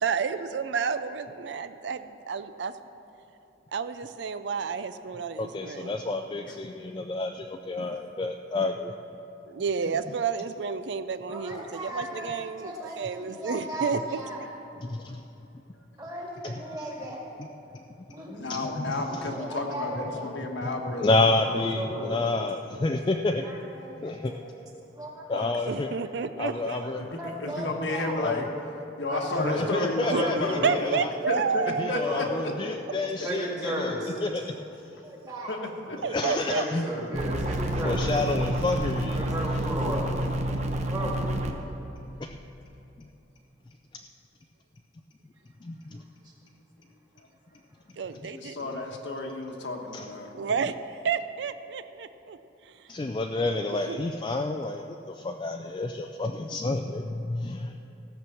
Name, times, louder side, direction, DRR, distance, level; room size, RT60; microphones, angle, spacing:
voice 1, 0.0-2.8 3.7-5.9 9.5-14.2 25.7-26.9 30.1-30.2 30.6-32.1 36.0-36.6 48.0-48.8 50.3-52.4 52.6-52.9 53.2-54.0, right 6 dB, 70° right, 11 dB, 0.4 m, -31 dB
voice 2, 5.4-8.9 14.8-15.2 16.4-16.5 18.8-19.0 21.0-23.4 24.0-24.3 25.3-25.9 26.4-27.1 28.2-28.4 29.4-31.0 31.6-33.9 34.2-34.5 36.1-36.9 37.6-39.2 42.2-42.3 45.6-46.0 49.9-50.0 52.9-57.7, left 2 dB, 25° left, 4 dB, 0.3 m, -29 dB
voice 3, 11.3-12.3 12.6-14.4 16.0-17.4 18.1-18.5 19.4-20.3 21.3-22.2 23.4-24.4 25.0-25.3 26.8-28.2 29.1-29.7 30.0-30.7 32.0-32.2 33.2-34.1 35.0-35.6 36.2-38.1 39.1-40.1 40.9-41.1, right 1 dB, 20° right, -3 dB, 2.1 m, -35 dB
voice 4, 18.3-21.7 25.3-25.6 27.0-28.5 29.0-30.8 31.3-33.3 35.5-36.0 48.1-50.3, left 2 dB, 75° left, 2 dB, 1.3 m, -32 dB
sound 1, 37.1-41.5, right 1 dB, 35° right, 0.8 m, -29 dB
16.0 x 6.1 x 7.0 m, 2.9 s
head